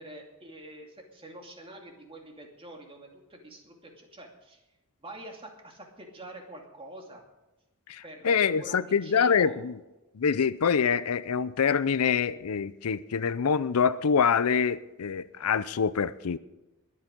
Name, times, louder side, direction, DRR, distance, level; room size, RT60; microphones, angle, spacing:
voice 1, 0.0-4.6 5.0-7.2 8.0-9.6, right 1 dB, 25° right, 2.6 m, -46 dB
voice 2, 7.9-9.7 10.1-16.4, left 6 dB, 90° left, 0.5 m, -25 dB
21.0 x 8.7 x 5.2 m
head